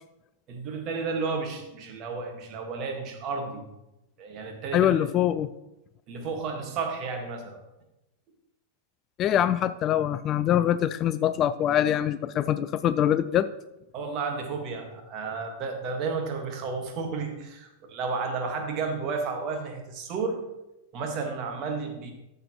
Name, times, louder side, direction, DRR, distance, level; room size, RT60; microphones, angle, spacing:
voice 1, 0.5-3.6 4.2-5.2 6.1-7.6 13.9-20.5 20.9-22.1, right 4 dB, 35° right, 3 dB, 1.8 m, -32 dB
voice 2, 4.7-5.5 9.2-13.5, left 11 dB, 30° left, 14 dB, 0.3 m, -24 dB
13.5 x 6.7 x 3.1 m, 0.93 s
figure-of-eight pair, 90°, 0 cm